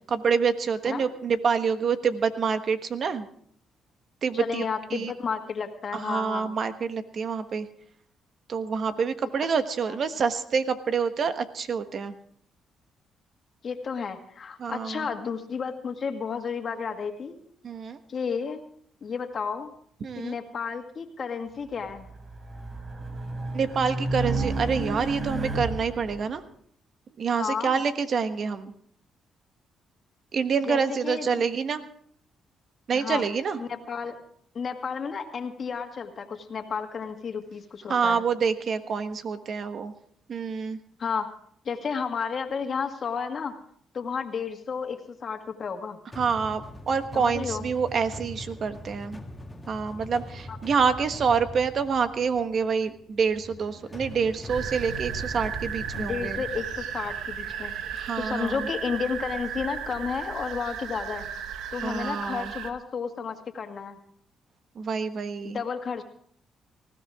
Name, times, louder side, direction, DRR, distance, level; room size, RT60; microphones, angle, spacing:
voice 1, 0.1-3.3 4.2-4.6 4.9-5.1 5.9-7.7 8.5-12.2 14.6-15.1 17.6-18.0 20.0-20.3 23.5-26.4 27.2-28.7 30.3-31.8 32.9-33.6 37.9-39.9 40.3-40.8 46.2-49.2 49.7-56.4 57.9-58.7 61.8-62.5 64.7-65.6, right 6 dB, 55° right, 9 dB, 1.3 m, -27 dB
voice 2, 4.3-6.5 9.8-9.9 13.6-17.4 18.1-18.6 19.0-19.7 20.2-22.1 27.4-27.8 30.7-31.4 32.9-33.2 33.6-34.2 34.5-38.2 41.0-41.3 41.7-43.5 43.9-46.0 47.1-47.6 50.5-50.6 56.0-57.7 58.2-61.3 61.7-64.0 65.4-66.0, left 6 dB, 50° left, 5 dB, 2.0 m, -32 dB
Race car auto racing, 21.8-26.2, right 2 dB, 35° right, 4.3 m, -31 dB
sound 1, 46.1-58.0, left 1 dB, 15° left, 1.9 m, -42 dB
sound 2, 54.5-62.7, right 8 dB, 85° right, 1.2 m, -35 dB
19.5 x 16.0 x 3.7 m, 0.62 s
cardioid pair, 90°, 0 cm